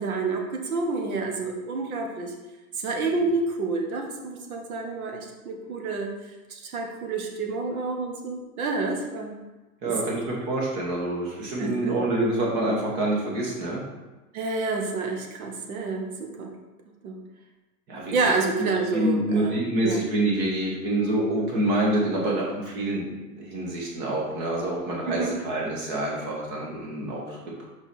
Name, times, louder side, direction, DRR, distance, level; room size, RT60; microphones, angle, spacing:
voice 1, 0.0-2.3 2.8-6.1 6.5-9.3 9.8-9.9 11.6-11.9 14.3-16.5 17.0-17.2 18.1-19.5 19.8-20.0 25.1-25.4, right 3 dB, 65° right, 2 dB, 1.3 m, -28 dB
voice 2, 9.8-13.8 17.9-18.4 18.9-23.1 23.3-27.6, right 1 dB, 25° right, -3 dB, 1.2 m, -27 dB
5.0 x 4.7 x 4.2 m, 1.2 s
hypercardioid pair, 155°, 46 cm